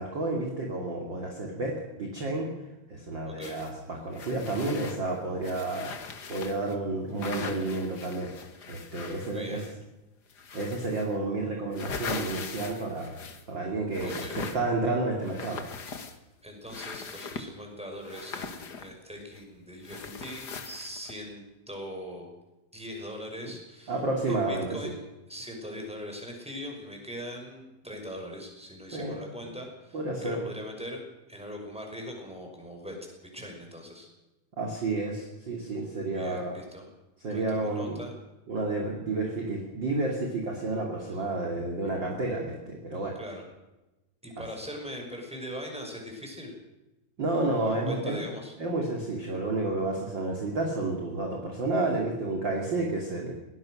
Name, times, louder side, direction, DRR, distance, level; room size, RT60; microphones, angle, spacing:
voice 1, 0.0-2.5 2.9-8.3 8.7-9.6 10.5-13.2 13.5-15.6 23.9-24.9 28.9-29.2 29.9-30.4 34.6-36.6 37.2-38.0 38.5-43.2 44.4-44.5 47.2-48.2 48.6-53.3, right 2 dB, 35° right, 0 dB, 3.1 m, -30 dB
voice 2, 3.3-3.6 9.2-9.6 14.0-14.4 16.4-22.3 22.7-24.0 24.3-25.0 25.3-31.0 31.3-33.0 33.3-34.1 36.0-36.9 37.3-38.1 41.1-41.2 43.1-43.4 44.2-46.5 47.6-48.5, equal, ahead, 2 dB, 5.7 m, -41 dB
sound 1, 3.4-3.7 4.1-6.8 7.2-9.9 10.3-11.1 11.5-13.6 13.9-14.8 15.2-16.3 16.7-17.5 18.0-19.4 19.8-21.2, left 5 dB, 45° left, 1.5 m, -41 dB
22.0 x 18.5 x 6.5 m, 1.0 s
omnidirectional pair, 3.9 m